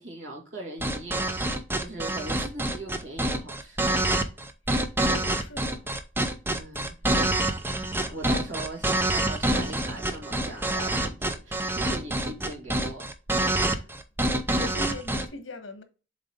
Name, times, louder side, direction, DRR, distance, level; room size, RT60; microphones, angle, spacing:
voice 1, 0.0-3.9 6.5-7.0 7.9-13.1, right 2 dB, 80° right, 2.6 m, -40 dB
sound 1, 0.8-15.3, right 1 dB, 10° right, 0.6 m, -26 dB
voice 2, 4.7-5.9 13.6-13.9 14.5-15.8, left 1 dB, 70° left, 1.4 m, -41 dB
7.4 x 3.8 x 3.7 m
head